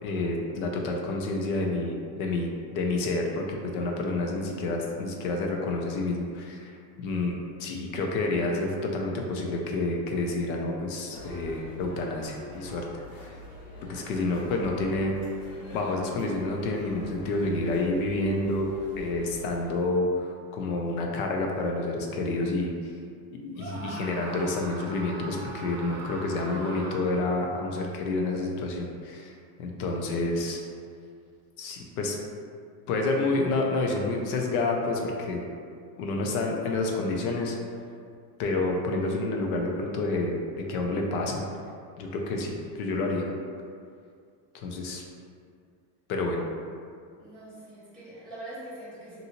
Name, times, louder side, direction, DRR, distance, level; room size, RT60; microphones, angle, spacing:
voice 1, 0.0-12.9 13.2-13.3 13.9-15.1 15.7-18.7 19.0-22.7 23.4-29.3 29.6-30.6 31.6-32.2 32.9-35.4 36.0-37.6 38.4-40.4 40.7-41.4 42.0-43.3 44.5-45.0 46.1-46.4, left 2 dB, 65° left, 1 dB, 0.6 m, -29 dB
sound 1, 11.1-19.7, equal, 85° left, 1.4 m, -44 dB
Screaming, 23.6-27.4, right 2 dB, 55° right, 0.5 m, -40 dB
voice 2, 47.2-49.2, right 1 dB, ahead, -12 dB, 0.4 m, -43 dB
2.7 x 2.6 x 2.8 m, 2.3 s
supercardioid pair, 155°, 47 cm